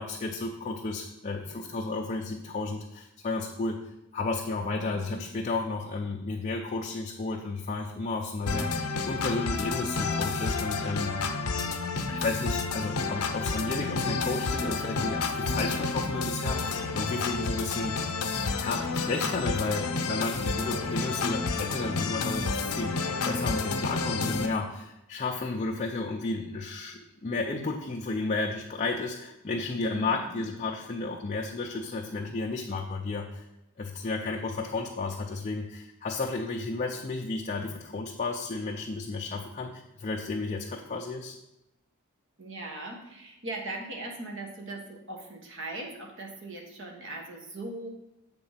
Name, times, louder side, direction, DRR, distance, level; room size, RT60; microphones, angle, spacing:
voice 1, 0.0-3.8 4.1-8.7 9.1-11.2 12.1-18.1 18.6-33.4 33.8-41.4, left 3 dB, 30° left, 1 dB, 0.5 m, -32 dB
voice 2, 4.6-5.2 29.9-30.4 42.4-47.9, right 2 dB, 55° right, 0 dB, 1.3 m, -40 dB
sound 1, 8.5-24.5, left 4 dB, 80° left, 0.7 m, -30 dB
7.7 x 3.7 x 5.7 m, 0.88 s
head